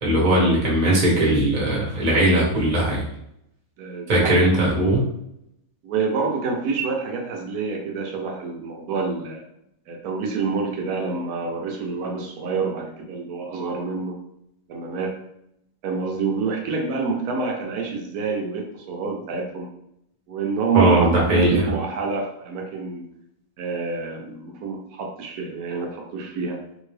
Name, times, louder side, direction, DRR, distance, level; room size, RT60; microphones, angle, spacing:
voice 1, 0.0-3.1 4.1-5.0 20.7-21.7, right 1 dB, 30° right, -5 dB, 1.1 m, -19 dB
voice 2, 3.8-4.4 5.8-9.4 9.9-14.2 14.7-15.2 15.8-19.7 20.3-23.1 23.6-26.6, right 5 dB, 85° right, 1 dB, 1.2 m, -27 dB
3.6 x 2.6 x 3.2 m, 0.78 s
omnidirectional pair, 1.5 m